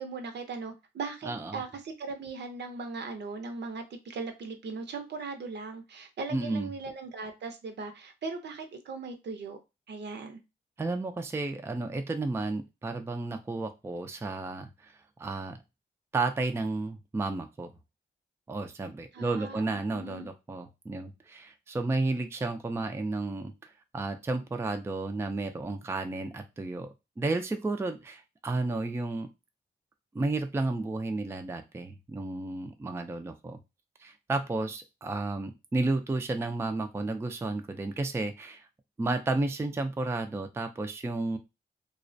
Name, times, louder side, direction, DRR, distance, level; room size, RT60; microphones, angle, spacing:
voice 1, 0.0-9.6 9.9-10.4 19.1-20.3, right 4 dB, 65° right, 6 dB, 0.6 m, -39 dB
voice 2, 1.3-1.6 6.3-6.7 10.8-14.9 15.2-15.6 16.1-17.7 18.5-29.3 30.1-33.6 34.0-38.7 39.0-41.4, right 2 dB, 15° right, 6 dB, 0.3 m, -32 dB
2.3 x 2.1 x 2.6 m, 0.25 s
cardioid pair, 65°, 19 cm